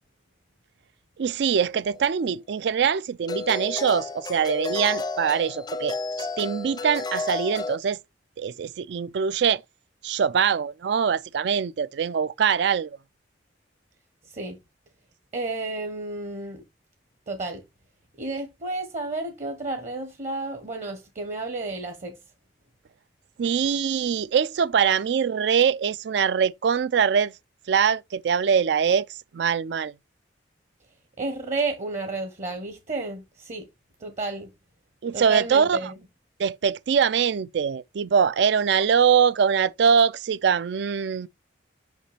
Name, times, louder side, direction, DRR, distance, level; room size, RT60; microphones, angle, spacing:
voice 1, 1.2-8.0 8.4-9.6 10.0-13.0 23.4-27.3 27.7-29.9 35.0-35.8 36.4-41.3, right 7 dB, 65° right, 0.4 m, -23 dB
sound 1, 1.9-2.0 3.3-7.8, left 3 dB, 20° left, 0.5 m, -32 dB
voice 2, 14.3-14.6 15.3-16.6 17.3-17.6 18.2-22.2 31.2-33.7 34.0-34.5 35.1-35.9, right 3 dB, 40° right, 1.0 m, -31 dB
5.9 x 5.2 x 3.2 m
head